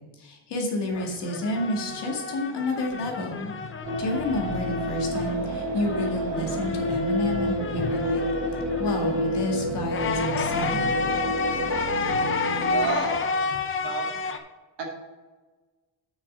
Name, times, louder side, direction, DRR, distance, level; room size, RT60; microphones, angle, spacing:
voice 1, 0.2-3.5 4.0-8.2 8.8-10.8, left 1 dB, 60° left, 1 dB, 2.2 m, -30 dB
sound 1, 0.9-5.5 5.8-14.4, left 4 dB, 25° left, 0.6 m, -31 dB
sound 2, 3.8-13.2, equal, 30° right, 1.7 m, -29 dB
voice 2, 12.4-13.1 13.8-14.1 14.8-14.9, right 4 dB, 65° right, 0 dB, 2.3 m, -30 dB
7.1 x 6.5 x 6.2 m, 1.3 s
cardioid pair, 160°, 46 cm